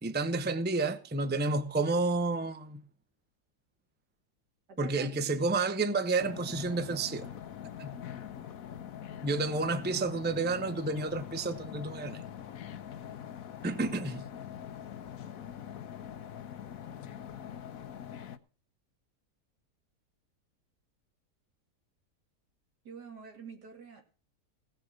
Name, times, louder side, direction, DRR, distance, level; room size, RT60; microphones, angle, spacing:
voice 1, 0.0-2.8 4.8-7.3 7.8-8.0 9.2-12.2 13.6-14.2, right 3 dB, 10° right, 0.6 m, -30 dB
voice 2, 4.7-5.1 22.8-24.1, right 5 dB, 80° right, 3.1 m, -48 dB
sound 1, 6.2-18.4, left 9 dB, 60° left, 1.2 m, -43 dB
17.0 x 6.7 x 6.2 m
omnidirectional pair, 1.7 m